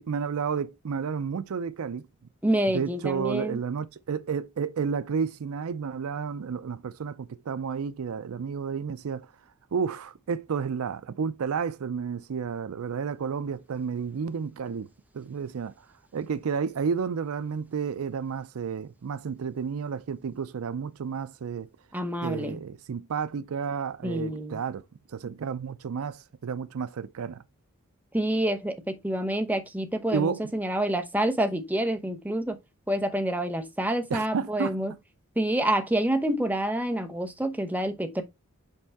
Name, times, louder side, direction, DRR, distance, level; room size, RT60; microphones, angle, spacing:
voice 1, 0.0-2.1 2.7-9.3 9.7-14.9 15.1-15.7 16.1-21.7 22.2-24.8 25.1-27.4 30.1-30.4 34.1-35.0, right 6 dB, 70° right, 0.4 m, -31 dB
voice 2, 2.4-3.6 21.9-22.6 24.0-24.6 28.1-32.6 32.9-34.9 35.4-38.2, right 1 dB, 10° right, 0.9 m, -27 dB
5.5 x 5.4 x 3.5 m
head